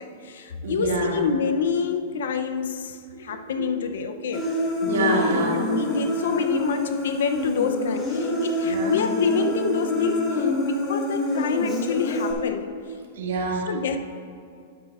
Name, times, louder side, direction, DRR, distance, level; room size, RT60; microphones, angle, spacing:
voice 1, 0.0-4.5 5.5-12.7 13.7-14.0, left 6 dB, 80° left, 8 dB, 0.6 m, -27 dB
voice 2, 0.6-1.2 3.3-3.7 4.8-5.5 8.6-8.9 13.2-13.7, right 2 dB, 85° right, -2 dB, 2.1 m, -26 dB
Human voice, 4.3-12.3, left 2 dB, 20° left, 1.5 m, -26 dB
11.5 x 9.9 x 2.4 m, 2.4 s
supercardioid pair, 160°, 0 cm